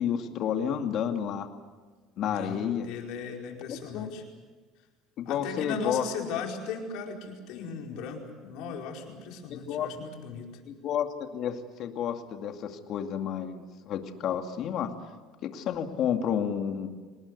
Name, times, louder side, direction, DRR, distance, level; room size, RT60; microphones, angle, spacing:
voice 1, 0.0-1.5 2.2-2.9 3.7-4.1 5.2-6.3 9.5-9.9 10.7-14.9 15.4-16.9, left 8 dB, 55° left, 5 dB, 2.3 m, -31 dB
voice 2, 2.2-4.2 5.2-10.5, left 5 dB, 75° left, 1 dB, 4.9 m, -37 dB
26.0 x 20.0 x 8.2 m, 1.4 s
cardioid pair, 130°, 0 cm